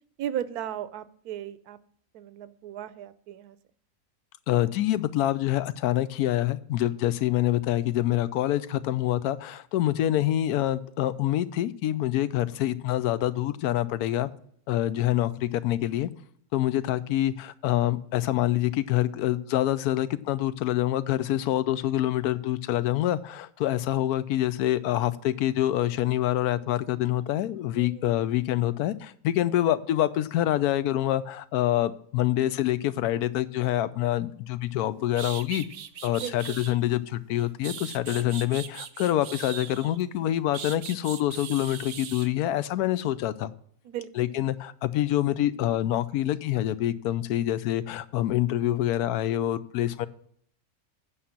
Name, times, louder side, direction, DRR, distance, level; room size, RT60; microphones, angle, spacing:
voice 1, 0.2-1.8 2.1-3.6 27.7-28.2 36.2-36.6 43.8-44.1, right 10 dB, 80° right, 15 dB, 1.1 m, -36 dB
voice 2, 4.5-14.3 14.7-16.1 16.5-35.7 36.0-43.5 44.2-50.1, left 13 dB, 85° left, 16 dB, 1.1 m, -26 dB
sound 1, 34.7-34.8 35.1-36.8 37.4-40.0 40.5-42.3, right 8 dB, 60° right, 0.9 m, -40 dB
8.7 x 5.6 x 7.1 m, 0.64 s
omnidirectional pair, 1.6 m